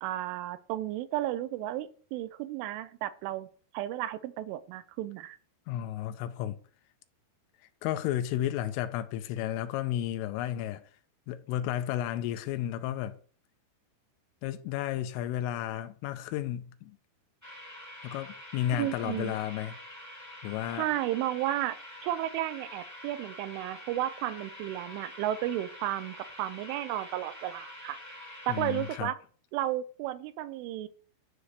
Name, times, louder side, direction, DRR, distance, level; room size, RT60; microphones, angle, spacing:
voice 1, 0.0-3.5 3.7-5.4 18.8-19.4 20.7-28.0 28.5-29.2 29.5-30.9, right 13 dB, 85° right, 3.2 m, -33 dB
voice 2, 5.7-6.6 7.8-10.8 11.3-13.2 14.4-17.0 18.0-19.8 20.4-20.9 28.5-29.1, left 12 dB, 90° left, 3.3 m, -32 dB
sound 1, 17.4-29.0, left 1 dB, 5° right, 3.0 m, -46 dB
11.5 x 5.0 x 8.0 m
omnidirectional pair, 5.8 m